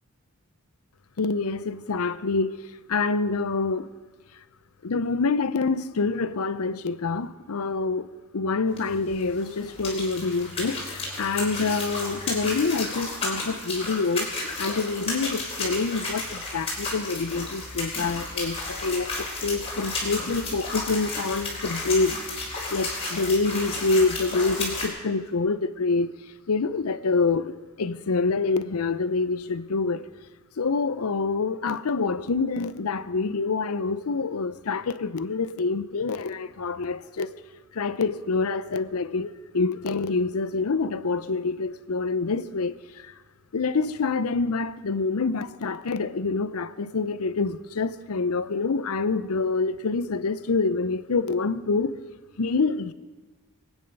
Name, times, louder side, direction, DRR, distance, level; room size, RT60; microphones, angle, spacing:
voice 1, 1.2-3.9 4.8-8.1 8.3-14.3 14.6-26.2 26.5-30.1 30.6-37.3 37.7-43.1 43.5-51.9 52.4-52.9, left 4 dB, 80° left, 0.6 m, -26 dB
sound 1, 8.7-24.9, left 2 dB, 25° left, 3.9 m, -33 dB
23.0 x 9.2 x 5.4 m
head